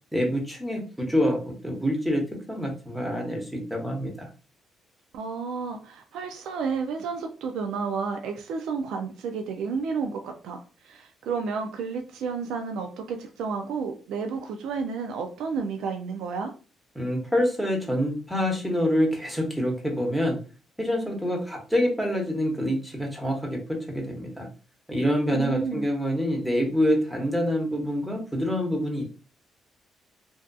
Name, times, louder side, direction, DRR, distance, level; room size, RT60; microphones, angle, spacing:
voice 1, 0.1-2.2 2.5-4.3 17.0-20.4 20.8-24.5 24.9-29.0, equal, ahead, 0 dB, 0.9 m, -26 dB
voice 2, 5.1-16.5 25.3-25.9, right 5 dB, 85° right, 4 dB, 0.3 m, -31 dB
2.6 x 2.4 x 2.3 m, 0.36 s
cardioid pair, 90°, 0 cm